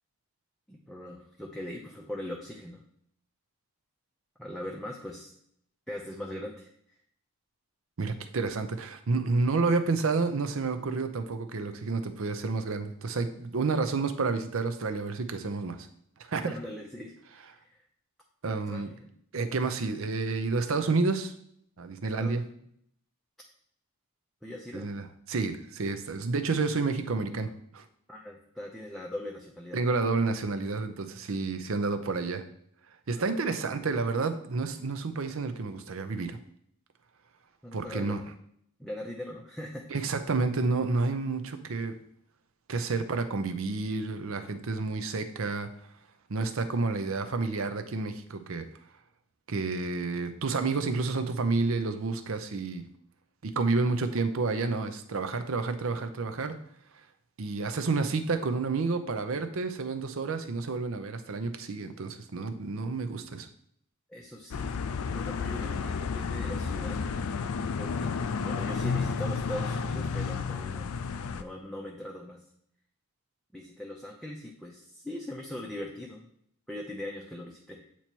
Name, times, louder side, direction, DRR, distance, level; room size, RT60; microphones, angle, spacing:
voice 1, 0.7-2.8 4.4-5.3 5.9-6.7 16.4-17.8 18.4-19.1 22.2-22.7 24.4-24.9 28.1-30.0 33.2-33.4 37.6-38.3 38.8-39.9 64.1-64.7 65.1-67.2 67.8-68.1 68.4-70.9 71.3-72.4 73.5-76.3 76.7-77.8, left 1 dB, ahead, -2 dB, 0.6 m, -40 dB
voice 2, 8.0-15.9 16.3-16.5 18.4-18.9 19.3-21.3 21.8-22.4 24.7-27.8 29.7-32.4 33.1-36.4 37.7-38.2 39.9-41.9 42.7-45.7 46.3-48.7 49.5-52.8 53.4-56.6 57.4-63.5, right 3 dB, 65° right, 9 dB, 0.6 m, -30 dB
sound 1, 64.5-71.4, left 5 dB, 75° left, 0.4 m, -31 dB
8.2 x 3.0 x 4.4 m, 0.68 s
head